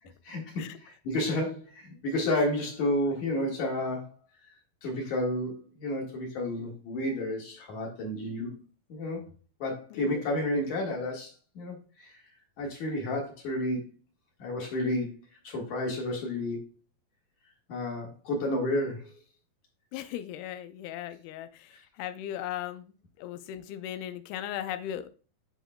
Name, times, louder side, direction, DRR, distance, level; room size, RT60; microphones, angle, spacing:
voice 1, 0.8-4.1 4.8-8.6 8.9-9.2 9.6-11.3 11.6-12.2 12.6-13.8 14.4-15.2 15.4-16.7 17.7-19.1, left 1 dB, 55° left, 0 dB, 2.6 m, -31 dB
voice 2, 9.9-10.2 19.9-25.1, left 11 dB, 90° left, 11 dB, 2.6 m, -38 dB
9.9 x 4.9 x 2.2 m, 0.36 s
omnidirectional pair, 4.4 m